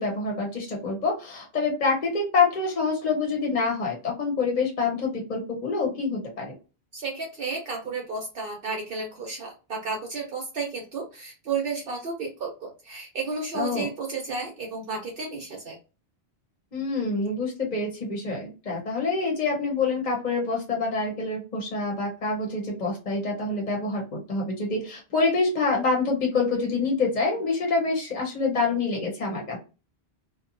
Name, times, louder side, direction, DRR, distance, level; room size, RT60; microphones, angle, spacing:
voice 1, 0.0-6.5 13.5-13.9 16.7-29.6, left 4 dB, 45° left, 0 dB, 0.9 m, -26 dB
voice 2, 6.9-15.7, right 4 dB, 60° right, 0 dB, 0.9 m, -32 dB
2.7 x 2.2 x 2.5 m, 0.31 s
omnidirectional pair, 1.1 m